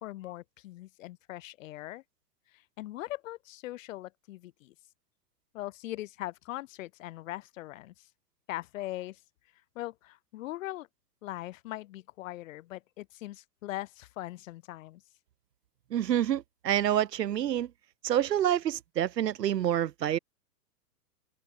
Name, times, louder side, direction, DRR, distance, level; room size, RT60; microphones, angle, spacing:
voice 1, 0.0-2.0 2.5-4.7 5.5-8.1 8.5-9.2 9.7-10.9 11.2-15.0, left 16 dB, 55° left, 0.8 m, -40 dB
voice 2, 15.9-17.7 18.0-20.2, right 11 dB, 85° right, 0.8 m, -27 dB
open air
hypercardioid pair, 125°, 48 cm